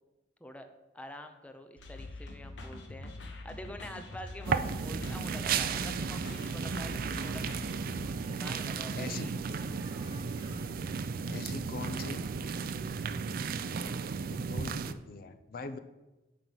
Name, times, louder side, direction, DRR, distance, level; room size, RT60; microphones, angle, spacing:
voice 1, 0.9-3.1 3.4-7.5 8.2-9.3, equal, 10° left, 6 dB, 0.5 m, -46 dB
sound 1, 1.8-8.0, left 2 dB, 90° left, 1.1 m, -44 dB
sound 2, 4.4-14.9, right 5 dB, 55° right, 0.4 m, -34 dB
sound 3, 5.1-12.5, equal, 15° right, 1.3 m, -56 dB
voice 2, 9.0-9.3 11.2-12.2 14.3-15.8, left 4 dB, 55° left, 9 dB, 0.5 m, -41 dB
5.9 x 5.2 x 6.1 m, 1.0 s
head